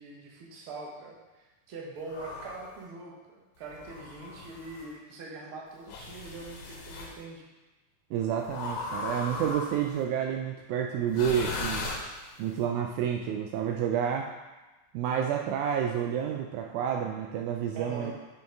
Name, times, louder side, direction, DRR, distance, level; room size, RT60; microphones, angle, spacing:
voice 1, 0.0-7.4 17.7-18.2, right 3 dB, 55° right, -2 dB, 1.6 m, -43 dB
sound 1, 2.1-2.7 3.7-4.9 5.9-7.2 8.5-10.0 11.1-12.5, left 3 dB, 85° left, 2.7 m, -37 dB
voice 2, 8.1-11.9 12.4-14.3 14.9-18.1, right 8 dB, 85° right, 2 dB, 1.7 m, -29 dB
7.2 x 5.5 x 4.6 m, 1.2 s
omnidirectional pair, 4.0 m